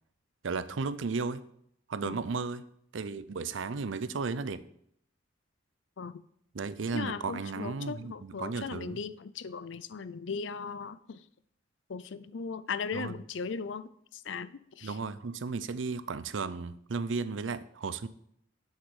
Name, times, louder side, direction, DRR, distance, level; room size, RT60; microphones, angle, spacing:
voice 1, 0.4-1.4 1.9-2.6 2.9-4.6 6.5-9.0 12.9-13.1 14.8-18.1, right 4 dB, 80° right, 15 dB, 0.6 m, -34 dB
voice 2, 6.9-11.2 11.9-15.0, left 5 dB, 70° left, 15 dB, 0.5 m, -38 dB
8.1 x 6.5 x 6.3 m, 0.70 s
head